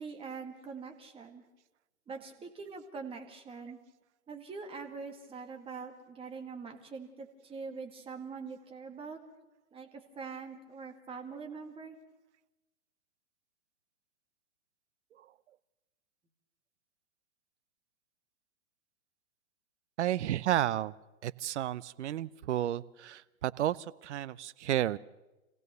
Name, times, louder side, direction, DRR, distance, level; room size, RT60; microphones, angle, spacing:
voice 1, 0.0-1.4 2.1-3.8 4.3-9.2 9.7-12.0, right 5 dB, 15° right, 4 dB, 2.0 m, -43 dB
voice 2, 20.0-20.9 21.2-25.0, right 12 dB, 55° right, 19 dB, 0.7 m, -32 dB
26.5 x 16.5 x 6.9 m, 1.1 s
hypercardioid pair, 135°, 42 cm